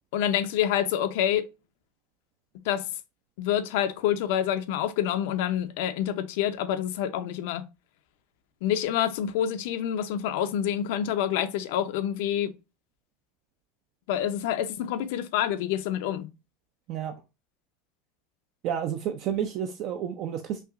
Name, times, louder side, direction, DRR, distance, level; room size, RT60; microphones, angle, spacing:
voice 1, 0.1-1.5 2.6-2.8 3.4-7.7 8.6-12.5 14.1-16.3, left 10 dB, 60° left, 0.6 m, -27 dB
voice 2, 18.6-20.6, right 9 dB, 35° right, 0.5 m, -30 dB
5.7 x 2.8 x 2.5 m
supercardioid pair, 175°, 0 cm